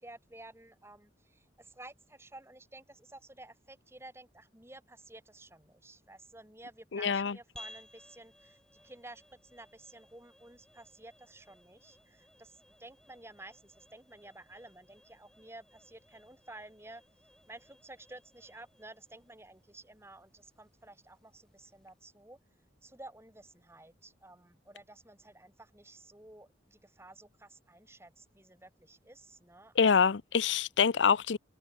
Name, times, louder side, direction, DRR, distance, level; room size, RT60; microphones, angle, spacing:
voice 1, 0.0-17.0 17.5-22.4 22.8-30.0, right 2 dB, 15° right, 3.0 m, -53 dB
voice 2, 6.9-7.3 29.8-31.4, left 6 dB, 85° left, 0.6 m, -25 dB
sound 1, 7.6-22.2, left 1 dB, 5° left, 5.9 m, -59 dB
head